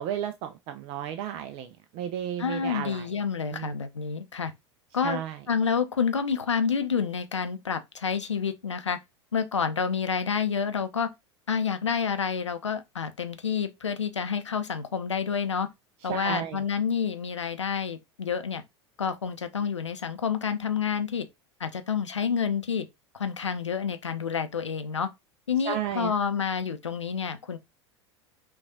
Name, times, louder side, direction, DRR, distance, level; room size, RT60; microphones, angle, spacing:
voice 1, 0.0-3.1 3.5-3.7 5.0-5.4 16.1-16.6 25.7-26.1, right 10 dB, 40° right, 0.4 m, -33 dB
voice 2, 2.4-4.5 4.9-5.2 5.5-9.0 9.3-11.1 11.5-15.7 16.0-18.6 19.0-21.3 21.6-22.9 23.1-25.1 25.5-27.6, left 6 dB, 80° left, 0.5 m, -28 dB
5.8 x 2.3 x 2.6 m
figure-of-eight pair, 80°, 15 cm